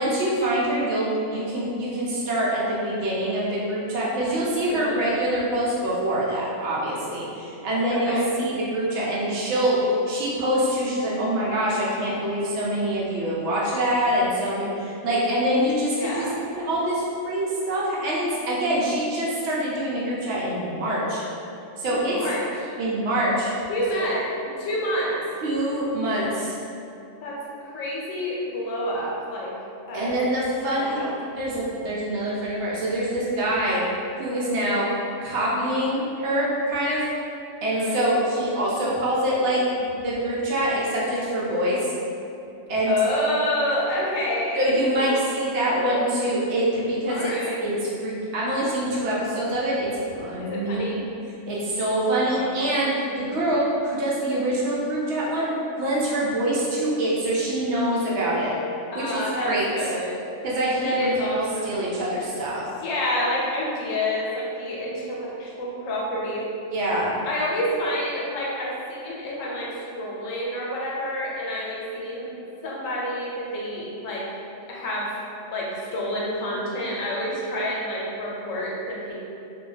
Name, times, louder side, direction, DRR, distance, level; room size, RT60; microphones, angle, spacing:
voice 1, 0.0-9.8 10.1-21.2 21.8-22.2 22.8-23.5 23.9-24.0 25.4-26.6 29.9-31.0 31.4-33.8 34.2-34.9 35.2-37.0 37.6-41.8 42.7-42.9 44.6-47.3 47.6-49.9 50.1-51.1 51.5-52.9 53.2-58.5 58.9-59.7 60.4-62.6 66.7-67.2, right 1 dB, 65° right, -6 dB, 0.8 m, -25 dB
voice 2, 4.4-5.1 7.9-8.3 16.0-16.3 21.9-22.7 23.7-25.2 27.2-29.5 29.9-30.2 30.7-31.2 37.7-38.1 42.9-45.2 45.5-46.3 47.1-47.6 50.4-51.0 52.0-52.5 58.9-60.2 60.8-61.9 62.8-66.5 67.2-72.3 72.6-74.3 74.7-75.2 75.5-79.1, left 1 dB, 80° left, -4 dB, 1.0 m, -28 dB
2.4 x 2.2 x 3.1 m, 2.7 s
omnidirectional pair, 1.4 m